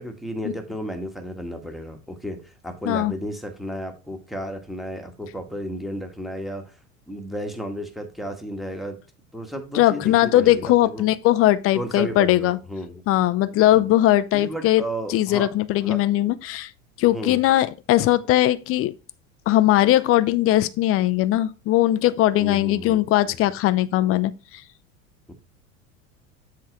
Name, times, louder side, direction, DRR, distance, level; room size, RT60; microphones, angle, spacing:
voice 1, 0.0-6.8 7.1-9.0 9.3-11.1 11.7-13.0 13.8-13.9 14.3-15.5 15.8-16.0 17.1-17.4 22.4-23.4 25.3-25.4, equal, ahead, 1.4 m, -33 dB
voice 2, 9.7-12.6 13.1-14.8 15.1-16.7 17.0-18.9 19.5-24.3, left 14 dB, 35° left, 0.5 m, -19 dB
7.7 x 3.7 x 4.5 m
hypercardioid pair, 80°, 40 cm